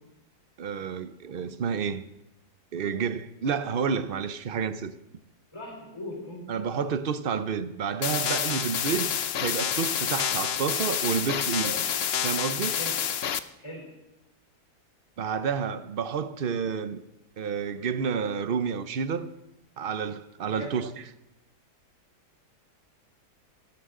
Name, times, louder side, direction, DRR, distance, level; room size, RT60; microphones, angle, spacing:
voice 1, 0.6-2.0 2.7-4.9 6.5-11.7 12.2-12.8 15.2-17.0 17.4-19.3 19.8-20.9, right 6 dB, 50° right, 0.6 m, -30 dB
voice 2, 5.5-6.6 10.5-10.6 11.6-11.9 12.7-13.0 13.6-14.0 20.5-20.8, equal, 15° left, 3.8 m, -40 dB
sound 1, 8.0-13.4, left 8 dB, 60° left, 0.6 m, -28 dB
27.0 x 13.0 x 3.8 m
omnidirectional pair, 1.8 m